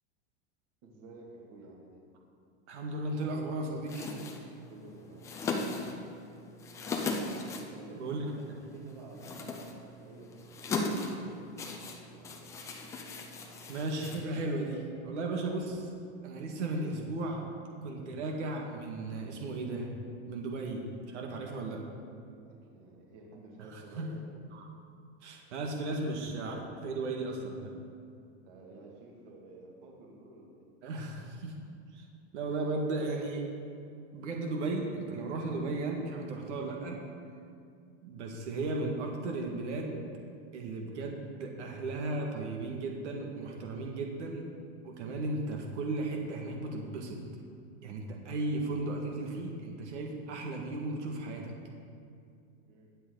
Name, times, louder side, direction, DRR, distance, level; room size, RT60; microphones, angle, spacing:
voice 1, 0.8-2.0 4.6-5.9 7.6-11.4 11.7-12.3 22.4-24.2 28.4-30.7 52.6-52.9, right 2 dB, 45° right, -2 dB, 2.4 m, -52 dB
voice 2, 2.7-4.2 8.0-8.2 13.7-15.9 16.2-17.4 17.8-19.9 20.3-21.8 23.7-24.1 24.5-24.6 25.2-27.8 30.8-31.5 31.9-32.1 32.3-33.4 34.1-37.0 38.0-40.1 40.5-44.5 44.8-47.2 47.8-51.5, right 2 dB, 90° right, 1 dB, 2.1 m, -35 dB
sound 1, 3.8-14.7, left 3 dB, 10° left, 0.4 m, -38 dB
21.5 x 7.9 x 4.0 m, 2.4 s
supercardioid pair, 175°, 34 cm